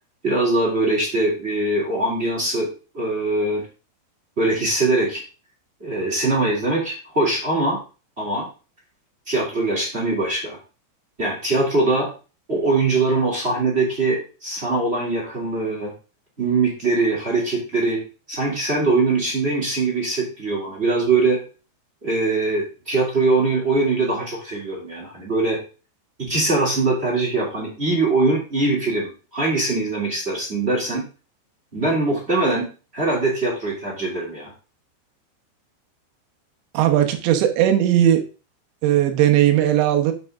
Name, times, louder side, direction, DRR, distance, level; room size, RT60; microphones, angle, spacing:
voice 1, 0.2-3.6 4.4-5.2 5.8-7.8 8.2-8.5 9.3-10.6 11.2-12.1 12.5-15.9 16.4-18.0 18.3-21.4 22.0-25.6 26.2-31.0 31.7-32.6 32.9-34.5, right 2 dB, 20° right, -2 dB, 2.0 m, -22 dB
voice 2, 36.7-38.2 38.8-40.1, right 11 dB, 75° right, 6 dB, 3.3 m, -17 dB
9.3 x 7.6 x 3.6 m, 0.34 s
omnidirectional pair, 5.3 m